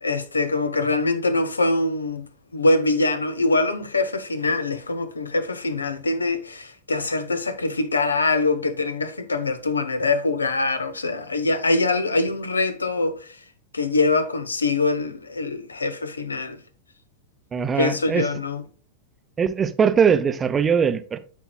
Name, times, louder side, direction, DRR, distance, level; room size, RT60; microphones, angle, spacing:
voice 1, 0.0-2.3 2.5-13.2 13.7-16.6 17.8-18.6, left 3 dB, 75° left, 0.7 m, -23 dB
voice 2, 17.5-18.3 19.4-21.2, right 6 dB, 20° right, 0.7 m, -21 dB
12.0 x 4.6 x 2.3 m
figure-of-eight pair, 90°, 0 cm